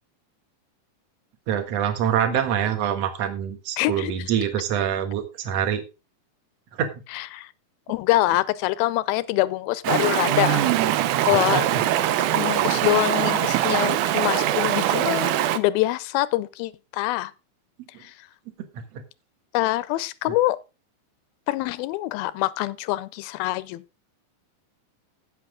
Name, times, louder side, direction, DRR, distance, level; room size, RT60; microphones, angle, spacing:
voice 1, 1.5-5.8 6.7-6.9 11.5-11.6 18.7-19.0, right 9 dB, 55° right, 2.2 m, -25 dB
voice 2, 3.8-4.1 7.1-7.5 7.9-11.6 12.3-17.3 18.0-18.1 19.5-20.6 21.5-23.8, left 17 dB, 85° left, 2.5 m, -25 dB
Stream, 9.8-15.6, right 12 dB, 75° right, 1.9 m, -22 dB
16.0 x 6.1 x 3.7 m
omnidirectional pair, 4.2 m